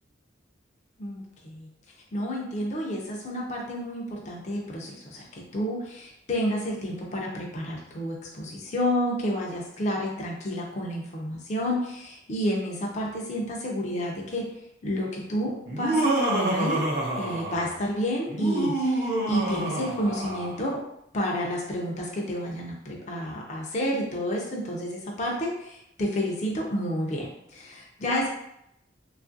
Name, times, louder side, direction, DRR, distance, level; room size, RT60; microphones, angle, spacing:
voice 1, 1.0-1.7 2.1-14.4 14.8-16.8 17.1-20.8 21.1-28.3, equal, 35° left, -2 dB, 0.4 m, -30 dB
Laughter, 15.7-17.8 18.3-20.6, right 2 dB, 55° right, 0.6 m, -27 dB
3.0 x 2.4 x 2.5 m, 0.78 s
head